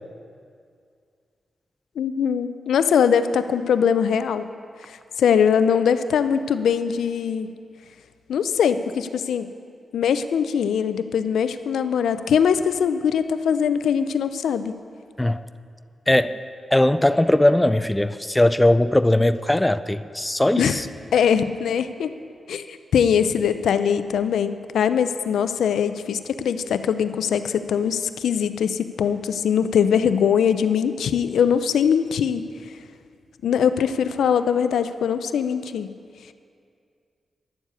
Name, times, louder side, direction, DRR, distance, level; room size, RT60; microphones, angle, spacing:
voice 1, 2.0-4.5 4.9-7.5 8.3-9.5 9.9-14.8 20.6-20.8 21.1-22.1 22.5-22.6 22.9-32.4 33.4-35.9, left 7 dB, 85° left, 11 dB, 0.4 m, -21 dB
voice 2, 16.1-16.4 16.7-20.9, left 1 dB, 15° left, 14 dB, 0.4 m, -19 dB
10.5 x 7.3 x 8.3 m, 2.3 s
cardioid pair, 60°, 0 cm